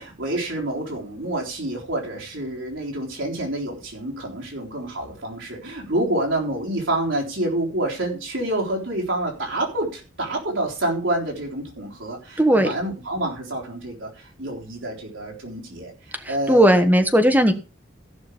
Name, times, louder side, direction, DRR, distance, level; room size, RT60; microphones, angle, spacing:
voice 1, 0.0-15.9 16.3-16.7, right 1 dB, 70° right, -1 dB, 3.8 m, -28 dB
voice 2, 12.4-12.7 16.5-17.5, equal, 10° right, 6 dB, 1.4 m, -16 dB
14.5 x 6.3 x 5.0 m, 0.32 s
head